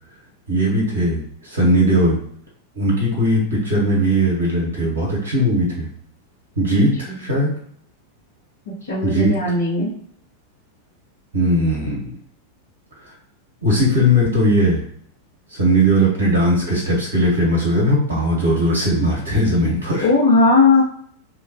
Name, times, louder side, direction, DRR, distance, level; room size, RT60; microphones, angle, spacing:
voice 1, 0.5-2.2 2.7-5.9 6.6-7.5 9.0-9.3 11.3-12.1 13.6-14.8 15.5-20.1, equal, 65° right, -4 dB, 1.0 m, -18 dB
voice 2, 8.9-9.9 20.0-20.8, left 3 dB, 65° left, -11 dB, 1.2 m, -16 dB
2.9 x 2.2 x 2.7 m, 0.64 s
figure-of-eight pair, 90°, 0 cm